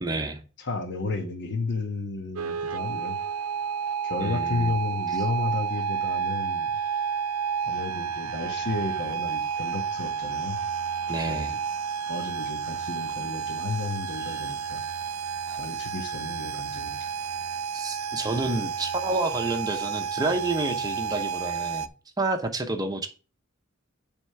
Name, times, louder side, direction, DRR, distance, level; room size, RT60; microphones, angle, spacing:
voice 1, 0.0-0.4 4.2-4.7 5.1-5.2 11.1-11.5 15.5-15.6 17.7-21.9 22.2-23.1, right 2 dB, 20° right, 0.8 m, -29 dB
voice 2, 0.6-3.2 4.0-6.7 7.7-10.6 11.3-11.6 12.1-14.8 15.6-17.0, left 3 dB, 55° left, 1.3 m, -32 dB
sound 1, 2.4-21.9, right 7 dB, 80° right, 0.5 m, -31 dB
9.8 x 3.5 x 4.6 m
head